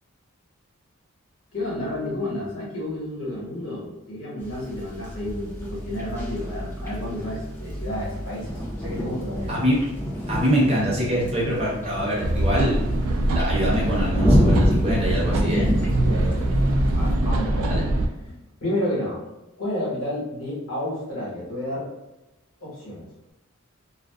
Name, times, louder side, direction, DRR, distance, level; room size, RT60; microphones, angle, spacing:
voice 1, 1.5-9.6 10.2-10.4 15.3-17.8 18.6-19.2 19.6-21.9 22.6-23.1, left 1 dB, 70° left, -5 dB, 1.3 m, -31 dB
sound 1, 4.4-17.2, equal, 10° left, 0.5 m, -28 dB
voice 2, 10.3-12.8 13.3-15.7 17.7-17.8, equal, 30° right, -6 dB, 0.8 m, -24 dB
sound 2, 12.2-18.1, right 1 dB, 80° right, 0.4 m, -23 dB
2.5 x 2.3 x 2.3 m, 0.99 s
head